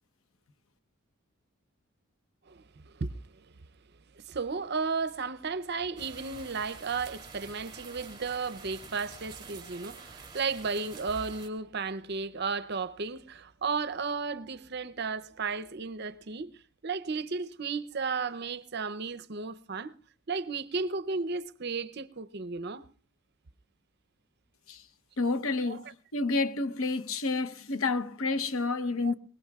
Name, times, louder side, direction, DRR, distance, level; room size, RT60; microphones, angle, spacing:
voice 1, 2.5-3.5 4.2-16.5 16.8-19.9 20.3-22.8 25.6-25.8 29.0-29.1, right 4 dB, 50° right, 0.6 m, -34 dB
sound 1, 6.0-11.5, right 4 dB, 20° right, 3.1 m, -47 dB
voice 2, 25.2-29.1, left 3 dB, 75° left, 0.9 m, -29 dB
23.0 x 20.0 x 2.4 m
head